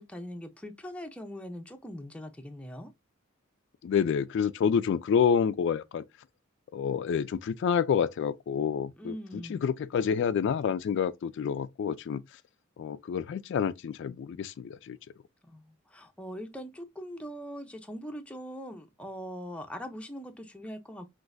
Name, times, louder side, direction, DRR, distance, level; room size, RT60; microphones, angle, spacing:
voice 1, 0.0-2.9 9.0-9.7 15.5-21.2, equal, 5° left, 0.6 m, -41 dB
voice 2, 3.8-6.0 6.7-12.4 12.8-15.0, left 7 dB, 60° left, 0.3 m, -28 dB
6.0 x 2.5 x 2.5 m
head